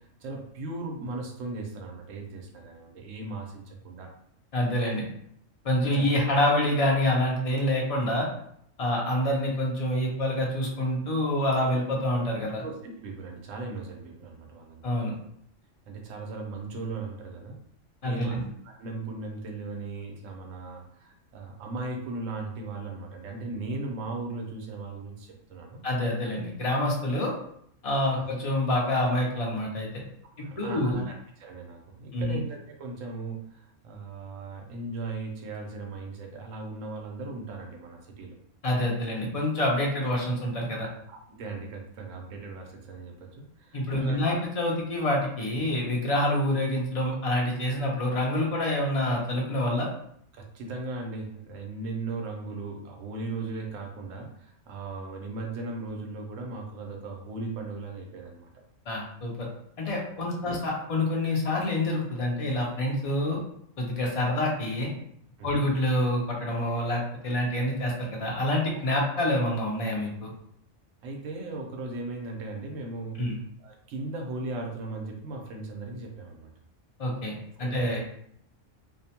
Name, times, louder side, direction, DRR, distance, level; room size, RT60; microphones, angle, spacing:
voice 1, 0.0-4.1 5.9-6.1 12.6-14.8 15.9-17.6 18.0-25.8 28.1-28.3 30.4-38.4 41.1-44.5 50.3-58.6 60.4-60.6 65.4-65.6 71.0-73.2 73.6-76.5 77.6-77.9, right 3 dB, 80° right, 1 dB, 1.0 m, -37 dB
voice 2, 4.5-5.0 5.6-8.3 8.8-12.6 14.8-15.1 18.0-18.4 25.8-27.3 27.8-29.9 30.4-31.0 32.1-32.4 38.6-40.9 43.7-49.9 58.9-59.5 59.8-63.4 63.8-64.9 65.4-70.3 73.2-73.4 77.0-78.0, left 1 dB, 55° left, -2 dB, 0.4 m, -27 dB
2.6 x 2.1 x 2.8 m, 0.69 s
omnidirectional pair, 1.4 m